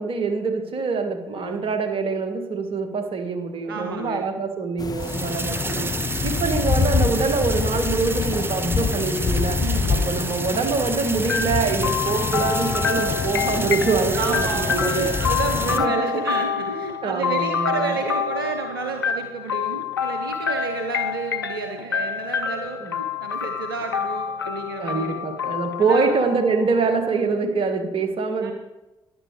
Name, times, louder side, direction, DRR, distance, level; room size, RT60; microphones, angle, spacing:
voice 1, 0.0-9.6 9.9-15.2 15.8-16.2 17.0-17.9 22.8-22.9 24.8-28.5, right 4 dB, 50° right, 6 dB, 1.6 m, -25 dB
voice 2, 1.3-1.6 3.7-4.2 5.2-5.6 9.6-10.1 14.1-25.4 25.8-26.2 28.4-28.5, right 5 dB, 85° right, 4 dB, 0.6 m, -31 dB
sound 1, 4.8-15.9, left 5 dB, 35° left, 0.7 m, -26 dB
sound 2, 5.0-15.8, right 3 dB, 20° right, 0.9 m, -31 dB
sound 3, 11.3-27.1, left 7 dB, 90° left, 0.4 m, -27 dB
14.5 x 10.5 x 3.2 m, 1.0 s
figure-of-eight pair, 40°, 11 cm